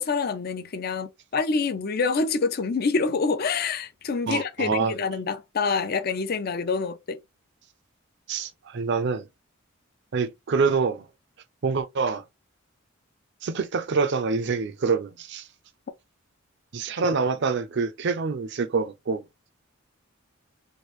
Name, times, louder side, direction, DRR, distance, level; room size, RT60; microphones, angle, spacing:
voice 1, 0.0-7.2, left 4 dB, 50° left, 0.5 m, -26 dB
voice 2, 4.3-4.9 8.3-9.3 10.1-11.1 11.6-12.2 13.4-15.5 16.7-19.2, right 4 dB, 55° right, 0.5 m, -26 dB
3.2 x 2.6 x 3.0 m
head